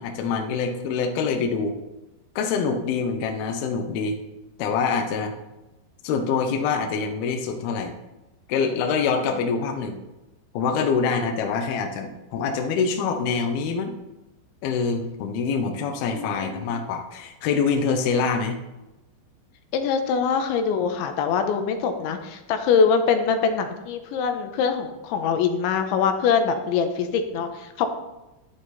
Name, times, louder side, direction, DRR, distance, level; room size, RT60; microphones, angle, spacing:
voice 1, 0.0-1.7 2.4-4.2 4.6-5.4 6.0-8.0 8.5-10.0 10.5-13.9 14.6-18.6, left 5 dB, 70° left, 4 dB, 2.7 m, -25 dB
voice 2, 16.1-16.7 19.7-27.9, left 6 dB, 85° left, 6 dB, 3.4 m, -23 dB
12.0 x 11.0 x 4.2 m, 1.0 s
omnidirectional pair, 5.2 m